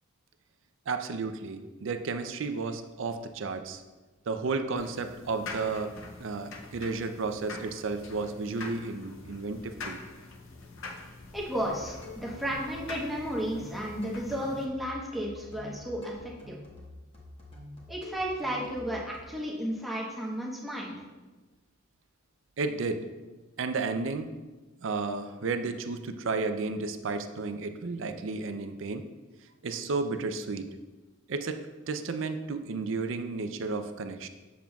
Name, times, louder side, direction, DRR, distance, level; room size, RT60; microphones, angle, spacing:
voice 1, 0.9-3.8 4.3-5.9 6.2-10.0 22.6-23.1 23.6-24.3 24.8-29.1 29.6-30.7 31.3-34.3, right 4 dB, 65° right, 8 dB, 0.5 m, -32 dB
sound 1, 4.8-14.6, left 3 dB, 70° left, 0.7 m, -45 dB
voice 2, 11.3-16.6 17.9-21.0, equal, ahead, -4 dB, 1.0 m, -33 dB
sound 2, 11.5-19.2, left 2 dB, 25° left, 1.2 m, -47 dB
7.2 x 7.1 x 2.3 m, 1.2 s
head